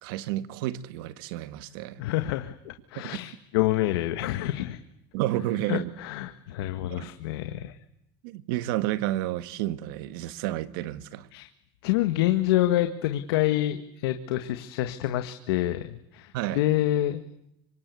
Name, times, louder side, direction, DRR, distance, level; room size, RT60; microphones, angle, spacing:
voice 1, 0.0-2.0 3.0-3.2 5.1-5.9 7.0-7.1 8.2-11.3 16.3-16.6, right 14 dB, 65° right, 1.5 m, -30 dB
voice 2, 2.0-4.8 5.7-7.8 11.3-11.5 11.8-17.2, left 14 dB, 85° left, 1.6 m, -27 dB
28.0 x 25.5 x 8.3 m
cardioid pair, 180°, 13 cm